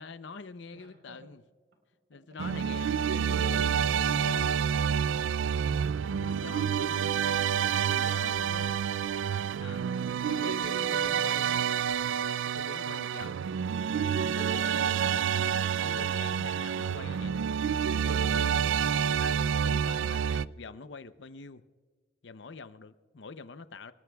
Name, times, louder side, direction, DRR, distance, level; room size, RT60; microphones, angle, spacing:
voice 1, 0.0-1.4 2.1-4.6 6.0-8.8 9.6-9.8 10.3-11.6 12.5-13.4 14.0-17.5 18.0-21.6 22.2-23.9, left 4 dB, 70° left, 0.7 m, -45 dB
voice 2, 0.7-1.3 2.1-2.4, right 1 dB, 70° right, 4.0 m, -58 dB
sound 1, 2.4-20.5, right 8 dB, 85° right, 0.3 m, -28 dB
28.0 x 19.0 x 2.3 m
head